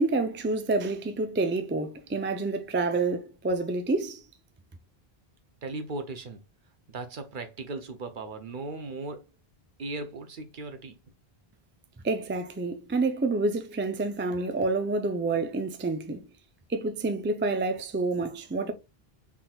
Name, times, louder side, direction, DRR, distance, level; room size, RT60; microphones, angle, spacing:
voice 1, 0.0-4.2 12.0-16.2 16.7-18.7, right 3 dB, 20° right, 0.4 m, -28 dB
voice 2, 5.6-6.4 6.9-9.3 9.8-11.0, right 3 dB, 55° right, 0.9 m, -37 dB
5.9 x 3.6 x 2.3 m
omnidirectional pair, 1.0 m